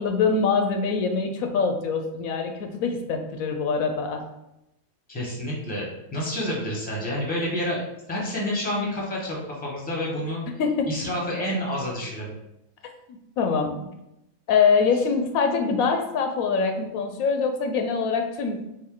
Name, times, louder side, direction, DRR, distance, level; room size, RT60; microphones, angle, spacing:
voice 1, 0.0-4.2 10.6-10.9 13.4-13.9 14.5-18.6, left 5 dB, 80° left, 5 dB, 1.0 m, -24 dB
voice 2, 5.1-10.4 10.9-12.4, left 1 dB, 5° left, -3 dB, 0.9 m, -29 dB
4.5 x 2.6 x 3.7 m, 0.87 s
omnidirectional pair, 1.5 m